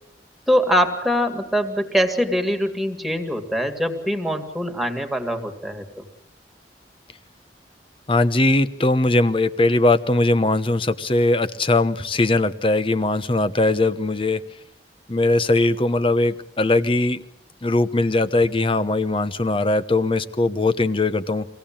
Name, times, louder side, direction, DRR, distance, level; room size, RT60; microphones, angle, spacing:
voice 1, 0.5-5.9, equal, ahead, 3 dB, 2.2 m, -23 dB
voice 2, 8.1-14.4 15.1-17.2 17.6-21.5, left 2 dB, 30° left, 11 dB, 0.9 m, -20 dB
24.5 x 17.5 x 8.8 m, 0.82 s
head